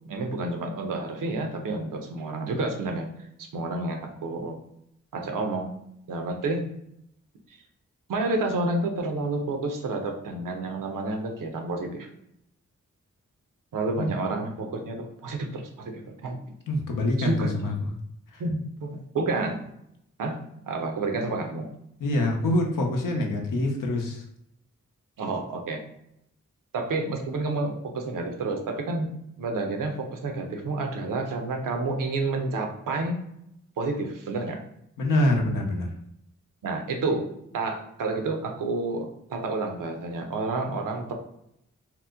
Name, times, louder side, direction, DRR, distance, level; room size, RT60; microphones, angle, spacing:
voice 1, 0.1-3.1 3.4-4.6 5.1-5.7 6.1-6.7 7.5-7.6 8.1-12.1 13.7-16.4 17.2-17.5 18.4-19.6 20.2-20.4 20.7-21.7 25.2-25.8 26.7-33.2 33.8-34.6 36.6-41.1, right 2 dB, 80° right, 4 dB, 0.6 m, -30 dB
voice 2, 16.7-17.7 18.3-18.4 22.0-24.2 35.0-35.9, left 1 dB, 80° left, 1 dB, 0.7 m, -25 dB
2.9 x 2.0 x 3.4 m, 0.77 s
cardioid pair, 45°, 32 cm